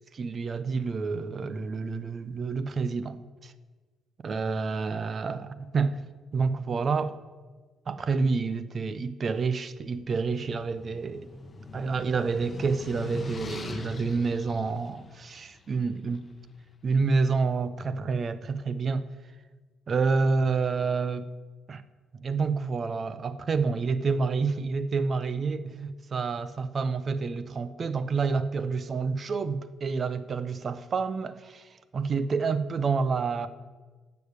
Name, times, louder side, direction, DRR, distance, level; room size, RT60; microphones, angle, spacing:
voice 1, 0.1-3.5 4.2-6.0 6.3-7.2 7.9-11.3 11.7-16.3 16.8-19.1 19.9-21.3 21.7-21.8 22.1-33.5, right 4 dB, 45° right, 0.8 m, -28 dB
sound 1, 10.0-16.3, left 3 dB, 35° left, 1.1 m, -40 dB
9.9 x 7.0 x 8.2 m
cardioid pair, 90°, 0 cm